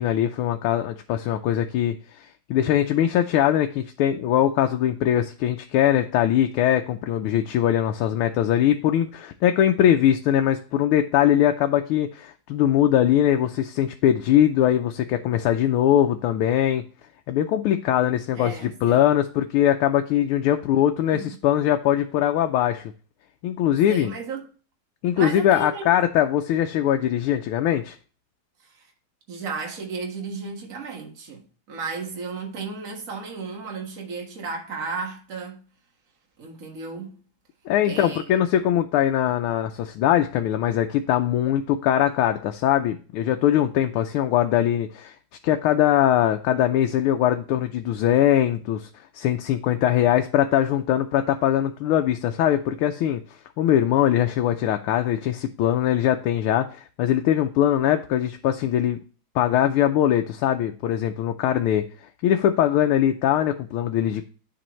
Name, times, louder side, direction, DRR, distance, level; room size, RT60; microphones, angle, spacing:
voice 1, 0.0-2.0 2.5-16.8 17.3-22.8 23.4-24.1 25.0-28.0 37.7-45.1 45.4-48.9 49.1-53.2 53.6-59.0 59.3-61.8 62.2-64.2, left 11 dB, 90° left, 1.5 m, -21 dB
voice 2, 18.3-19.1 21.1-21.4 23.9-24.5 25.2-25.9 28.6-28.9 29.3-35.6 36.4-37.2 37.8-38.4, right 4 dB, 40° right, 1.8 m, -34 dB
10.5 x 4.4 x 3.0 m
omnidirectional pair, 2.3 m